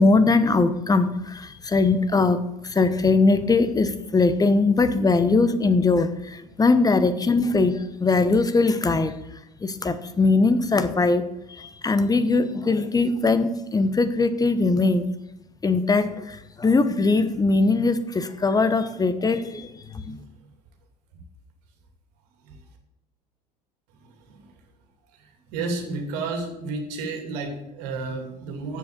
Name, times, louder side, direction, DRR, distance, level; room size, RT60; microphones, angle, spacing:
voice 1, 0.0-9.2 9.6-15.1 15.6-20.1, left 3 dB, 15° left, 11 dB, 1.0 m, -21 dB
voice 2, 24.0-24.5 25.5-28.8, right 3 dB, 65° right, 4 dB, 2.5 m, -32 dB
7.8 x 7.0 x 6.9 m, 0.87 s
hypercardioid pair, 75°, 21 cm